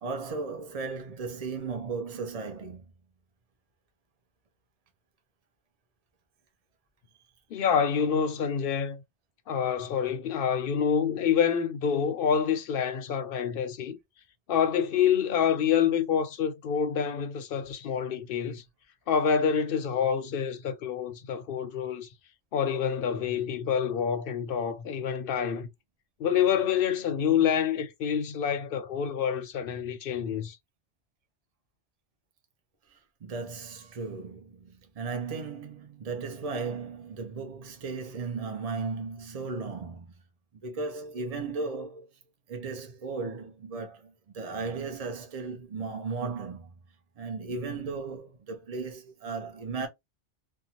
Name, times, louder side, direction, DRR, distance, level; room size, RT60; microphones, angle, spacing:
voice 1, 0.0-2.9 33.2-40.1 40.6-42.1 42.5-46.7 47.2-49.9, right 4 dB, 40° right, 0.7 m, -36 dB
voice 2, 7.5-9.0 9.5-14.0 14.5-18.6 19.1-22.1 22.5-25.7 26.2-30.6, left 7 dB, 65° left, 0.7 m, -27 dB
2.6 x 2.3 x 2.8 m
omnidirectional pair, 1.1 m